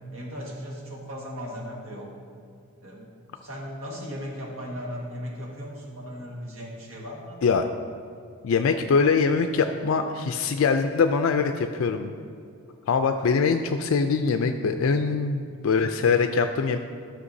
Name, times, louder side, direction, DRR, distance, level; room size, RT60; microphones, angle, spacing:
voice 1, 0.1-2.1 2.8-3.1 3.4-7.4, equal, 70° right, -3 dB, 1.6 m, -37 dB
voice 2, 8.4-12.1 12.9-16.8, left 5 dB, 70° left, 7 dB, 0.4 m, -23 dB
12.5 x 5.7 x 2.7 m, 2.4 s
head